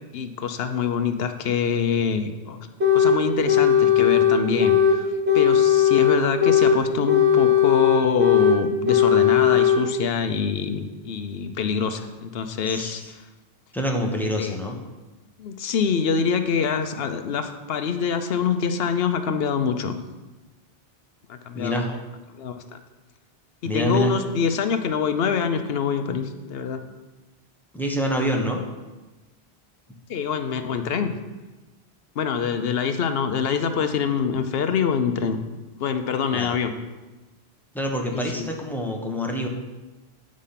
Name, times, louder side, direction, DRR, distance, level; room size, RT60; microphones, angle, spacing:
voice 1, 0.1-2.6 2.9-5.1 5.3-13.2 14.4-14.6 15.4-20.0 21.3-21.9 22.4-22.5 23.6-26.8 30.1-31.2 32.2-35.4 35.8-36.7 38.1-38.5, left 6 dB, 70° left, 8 dB, 0.9 m, -25 dB
sound 1, 2.8-3.2 3.5-5.0 5.3-6.8 7.1-8.6 8.9-9.8, left 8 dB, 80° right, 1.8 m, -17 dB
voice 2, 12.6-13.1 13.7-14.8 21.5-21.9 23.6-24.1 27.7-28.6 36.3-36.6 37.7-39.5, equal, ahead, 0 dB, 0.9 m, -26 dB
8.4 x 5.1 x 5.7 m, 1.1 s
omnidirectional pair, 1.1 m